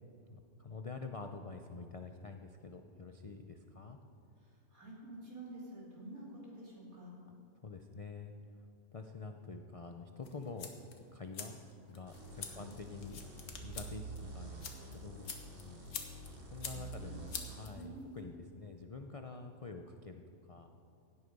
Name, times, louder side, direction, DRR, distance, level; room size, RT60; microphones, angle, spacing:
voice 1, 0.3-4.0 7.6-8.3 8.9-10.7 11.1-11.6 11.9-13.2 13.6-14.7 14.9-15.9 16.5-20.7, left 4 dB, 65° left, 5 dB, 0.3 m, -47 dB
voice 2, 4.7-7.1 12.5-12.7 16.7-17.2 17.7-18.2, right 1 dB, 70° right, -4 dB, 3.7 m, -49 dB
sound 1, 10.2-18.2, left 6 dB, 80° left, 1.7 m, -48 dB
sound 2, 12.1-17.7, right 2 dB, 40° right, 1.9 m, -48 dB
16.5 x 9.8 x 5.3 m, 2.5 s
omnidirectional pair, 1.5 m